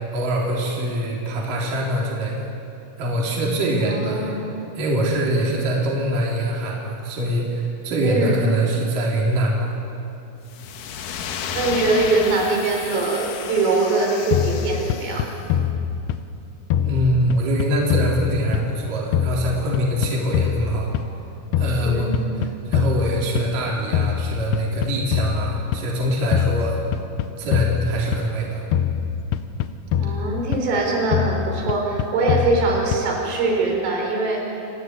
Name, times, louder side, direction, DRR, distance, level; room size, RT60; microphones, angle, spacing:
voice 1, 0.1-2.5 3.0-4.3 4.7-9.7 16.8-20.9 21.6-22.1 22.4-26.8 27.4-28.6, right 1 dB, 45° right, -3 dB, 5.0 m, -23 dB
voice 2, 3.8-4.4 8.0-8.4 11.5-15.3 21.8-22.2 30.0-34.8, right 3 dB, 75° right, 0 dB, 6.2 m, -22 dB
sound 1, 10.5-15.4, left 7 dB, 70° left, 2.0 m, -32 dB
sound 2, 14.3-16.4 16.7-18.9 19.1-21.2 21.5-23.6 23.9-25.9 26.3-28.4 28.7-30.8 31.1-33.2, left 9 dB, 90° left, 2.3 m, -24 dB
28.0 x 15.0 x 9.6 m, 2.8 s
omnidirectional pair, 5.7 m